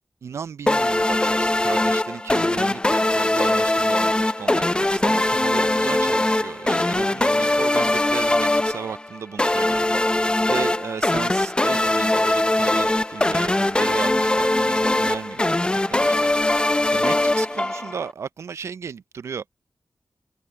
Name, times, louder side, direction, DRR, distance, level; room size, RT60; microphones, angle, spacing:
voice 1, 0.2-16.3 16.9-19.4, right 6 dB, 85° right, 0.5 m, -35 dB
sound 1, 0.7-18.1, left 1 dB, 20° left, 0.6 m, -21 dB
cardioid pair, 45°, 5 cm